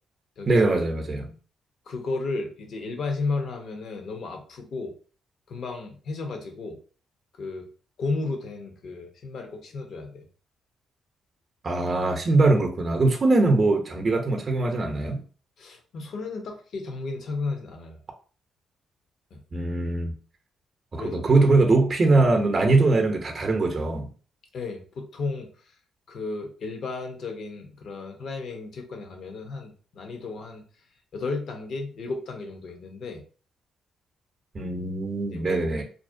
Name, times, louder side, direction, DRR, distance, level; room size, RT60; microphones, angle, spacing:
voice 1, 0.5-1.3 11.6-15.2 19.5-20.1 20.9-24.1 34.5-35.8, right 3 dB, 45° right, 0.6 m, -22 dB
voice 2, 1.9-4.9 5.5-6.8 7.4-7.7 8.0-10.3 15.6-18.0 19.3-19.4 20.9-21.2 24.5-25.5 26.1-30.6 31.1-33.2 35.3-35.8, left 3 dB, 65° left, 0.6 m, -33 dB
2.5 x 2.0 x 2.5 m
supercardioid pair, 60°, 0 cm